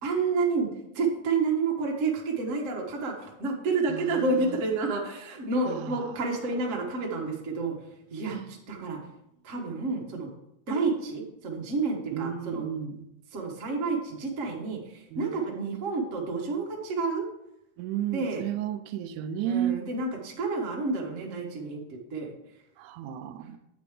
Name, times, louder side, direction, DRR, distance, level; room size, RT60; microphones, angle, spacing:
voice 1, 0.0-0.7 0.9-7.7 8.1-9.0 9.4-10.3 10.7-12.6 13.3-17.3 18.1-18.4 19.4-22.3 23.4-23.6, right 3 dB, 70° right, 0.7 m, -29 dB
voice 2, 3.9-4.6 5.7-6.1 12.1-13.1 15.1-15.4 17.8-19.8 22.8-23.6, right 9 dB, 85° right, 2.0 m, -33 dB
8.4 x 5.2 x 4.9 m
omnidirectional pair, 3.5 m